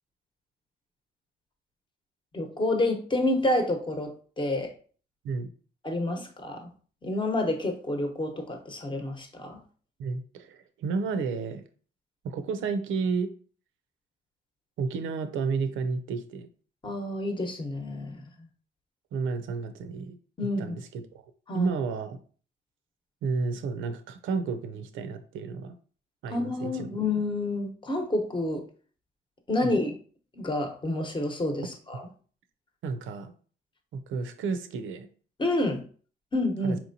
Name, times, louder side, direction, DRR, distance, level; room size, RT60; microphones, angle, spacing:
voice 1, 2.3-4.7 5.8-6.7 7.0-9.6 16.8-18.2 20.4-20.7 21.5-21.7 26.3-28.6 29.5-29.9 30.3-32.0 35.4-35.8 36.3-36.8, left 1 dB, 25° left, 3 dB, 0.9 m, -29 dB
voice 2, 10.0-11.6 12.2-13.3 14.8-16.5 19.1-21.2 21.5-22.2 23.2-25.8 26.2-26.9 29.6-29.8 32.8-33.3 33.9-35.1 36.6-36.8, right 4 dB, 80° right, 9 dB, 0.6 m, -32 dB
4.4 x 2.9 x 2.7 m, 0.42 s
cardioid pair, 90°, 20 cm